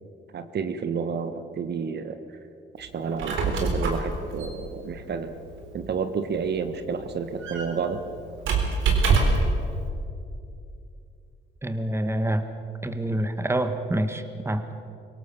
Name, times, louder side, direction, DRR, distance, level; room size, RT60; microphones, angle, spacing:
voice 1, 0.3-2.2 2.8-5.3 5.7-8.0, right 6 dB, 55° right, 9 dB, 1.4 m, -30 dB
Squeak, 3.0-9.6, right 4 dB, 80° right, 3.8 m, -26 dB
voice 2, 11.6-12.4 12.8-14.6, right 1 dB, 10° right, 8 dB, 1.6 m, -26 dB
24.5 x 17.5 x 7.1 m, 2.6 s
cardioid pair, 90°, 20 cm